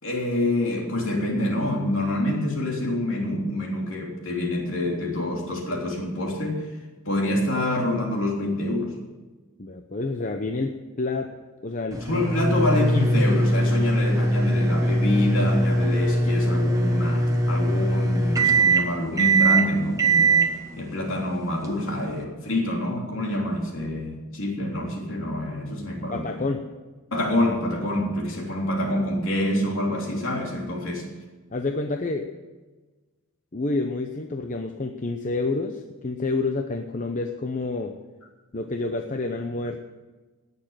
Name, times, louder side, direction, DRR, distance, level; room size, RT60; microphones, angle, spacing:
voice 1, 0.0-6.7 7.0-8.9 12.0-20.4 20.7-26.4 27.1-31.0, left 1 dB, 60° left, -1 dB, 3.4 m, -26 dB
voice 2, 9.6-11.3 11.6-12.2 26.1-26.6 31.5-32.3 33.5-38.0 38.5-39.8, left 3 dB, 35° left, 5 dB, 0.7 m, -28 dB
sound 1, 11.9-22.2, right 2 dB, 15° right, 1.2 m, -22 dB
17.5 x 6.8 x 9.1 m, 1.3 s
head